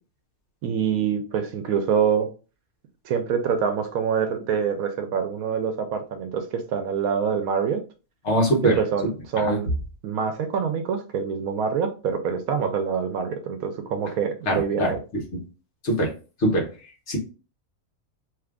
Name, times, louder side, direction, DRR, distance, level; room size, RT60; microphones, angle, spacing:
voice 1, 0.6-2.3 3.0-7.8 8.8-9.7 10.0-15.0, right 7 dB, 80° right, 6 dB, 1.0 m, -25 dB
voice 2, 8.2-8.8 9.4-9.6 14.5-15.2 15.8-16.1 16.4-16.7 17.1-17.2, right 1 dB, 55° left, 0 dB, 1.3 m, -22 dB
3.0 x 2.4 x 3.4 m, 0.34 s
omnidirectional pair, 1.5 m